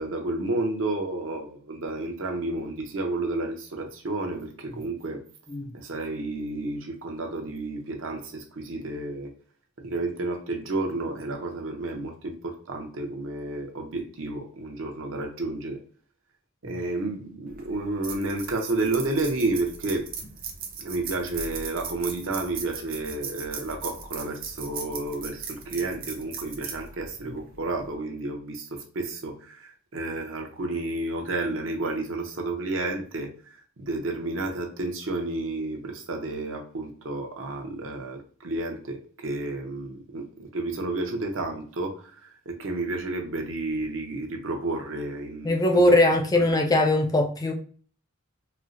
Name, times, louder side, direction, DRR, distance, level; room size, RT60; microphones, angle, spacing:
voice 1, 0.0-5.2 5.7-9.3 9.8-15.8 16.6-20.1 20.8-46.5, right 2 dB, 80° right, 0.7 m, -31 dB
sound 1, 17.5-27.9, right 6 dB, 45° right, 0.6 m, -38 dB
voice 2, 45.4-47.5, left 1 dB, 20° left, 0.4 m, -21 dB
4.3 x 2.0 x 2.5 m
head